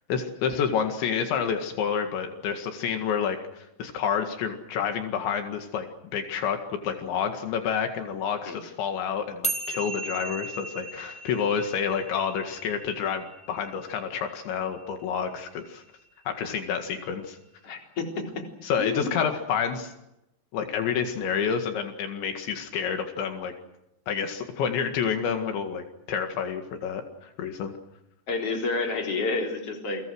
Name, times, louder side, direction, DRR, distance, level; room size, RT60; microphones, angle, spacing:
voice 1, 0.1-15.8 16.3-17.4 18.6-19.9 20.5-23.5 24.1-27.7, left 7 dB, 75° left, 5 dB, 4.2 m, -29 dB
sound 1, 9.4-16.0, right 2 dB, 10° left, 0.4 m, -37 dB
voice 2, 17.6-18.4 18.8-19.1 28.3-30.0, left 3 dB, 35° left, 2 dB, 4.5 m, -29 dB
29.5 x 24.5 x 6.4 m, 0.85 s
omnidirectional pair, 5.3 m